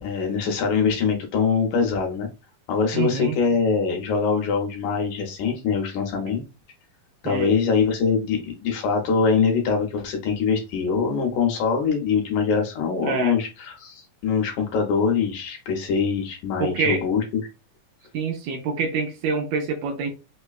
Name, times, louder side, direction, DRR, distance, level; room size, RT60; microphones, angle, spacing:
voice 1, 0.0-2.3 2.7-6.4 7.2-17.2, left 5 dB, 75° left, 2 dB, 2.1 m, -23 dB
voice 2, 2.9-3.4 7.2-7.6 13.0-13.4 16.6-17.0 18.1-20.1, right 5 dB, 85° right, 2 dB, 2.2 m, -26 dB
5.4 x 2.2 x 2.3 m, 0.29 s
omnidirectional pair, 3.8 m